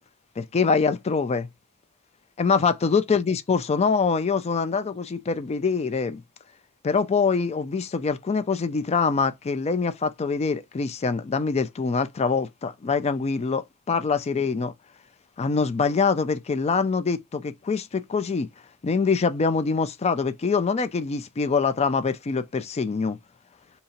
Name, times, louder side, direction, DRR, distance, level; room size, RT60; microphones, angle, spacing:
voice 1, 0.4-1.5 2.4-6.2 6.8-14.7 15.4-18.5 18.8-23.2, left 5 dB, 30° left, 0.4 m, -24 dB
2.8 x 2.7 x 4.1 m
head